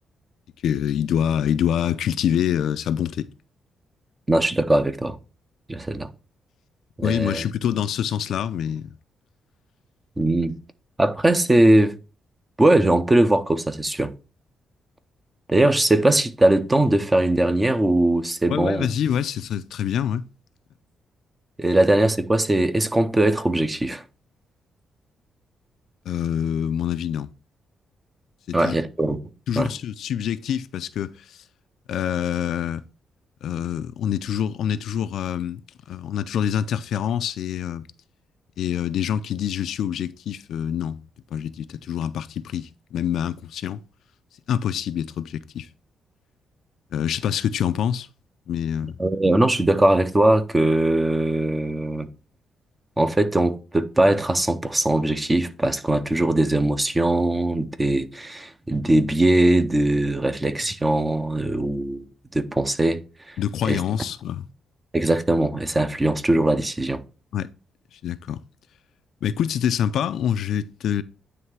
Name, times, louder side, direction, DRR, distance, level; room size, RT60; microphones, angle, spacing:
voice 1, 0.6-3.3 7.0-8.9 18.5-20.2 26.1-27.3 28.5-28.8 29.5-31.4 31.9-32.9 33.4-35.6 35.9-37.9 38.6-41.0 41.3-43.8 44.5-45.7 46.9-48.1 48.5-49.0 63.4-64.5 67.3-67.5 67.9-68.4 69.2-71.0, left 9 dB, 75° left, 0.5 m, -26 dB
voice 2, 4.3-5.2 5.7-6.1 7.0-7.4 10.2-10.6 11.0-12.0 12.6-14.1 15.5-18.9 21.6-24.0 28.5-29.2 29.6-29.7 49.0-52.1 53.0-62.1 62.3-63.0 63.3-63.4 63.6-63.8 64.9-67.0, right 1 dB, 15° right, 0.7 m, -20 dB
9.5 x 3.3 x 4.6 m
cardioid pair, 120°, 0 cm